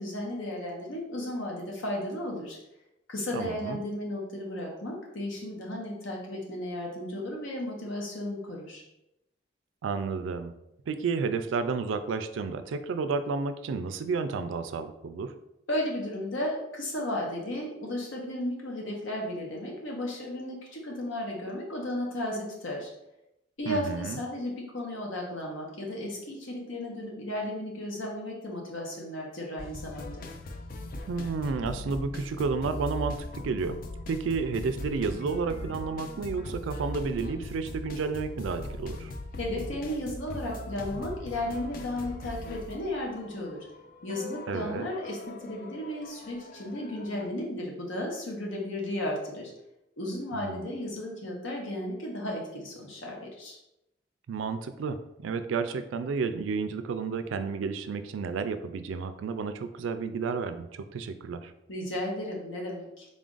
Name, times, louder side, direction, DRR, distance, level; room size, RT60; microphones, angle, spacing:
voice 1, 0.0-2.6 3.1-8.8 15.7-22.9 23.6-30.2 39.4-43.7 44.0-49.5 50.0-53.6 61.7-63.1, left 1 dB, 75° left, -1 dB, 1.0 m, -34 dB
voice 2, 3.3-3.8 9.8-10.5 10.9-15.3 23.7-24.2 31.1-33.8 34.1-39.1 44.5-44.8 50.3-50.7 54.3-61.5, right 4 dB, 75° right, 9 dB, 0.3 m, -31 dB
sound 1, 29.6-47.3, left 2 dB, 45° left, 0.3 m, -40 dB
3.7 x 2.5 x 3.8 m, 0.86 s
head